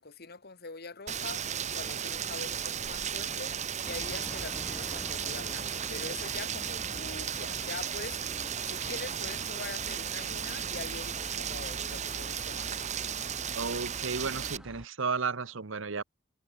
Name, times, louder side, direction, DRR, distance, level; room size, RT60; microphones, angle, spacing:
voice 1, 0.0-12.8, left 4 dB, 55° left, 1.9 m, -44 dB
Rain, 1.1-14.6, right 8 dB, 35° right, 1.0 m, -35 dB
sound 1, 3.8-14.9, equal, 5° right, 7.8 m, -46 dB
voice 2, 13.5-16.0, right 4 dB, 85° right, 1.1 m, -33 dB
head